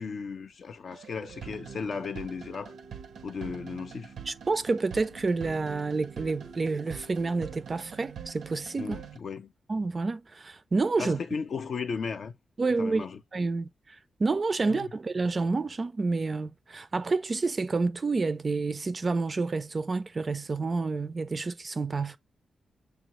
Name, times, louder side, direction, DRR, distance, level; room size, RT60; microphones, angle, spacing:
voice 1, 0.0-2.7 3.2-4.1 8.8-9.5 11.0-12.3 12.8-13.2 14.7-14.9, left 5 dB, 60° left, 0.6 m, -35 dB
sound 1, 0.9-9.2, right 7 dB, 85° right, 0.6 m, -44 dB
voice 2, 4.3-9.0 9.7-11.2 12.6-13.1 13.3-22.2, right 3 dB, 35° right, 0.4 m, -29 dB
6.7 x 2.4 x 2.9 m
wide cardioid pair, 120°, 0 cm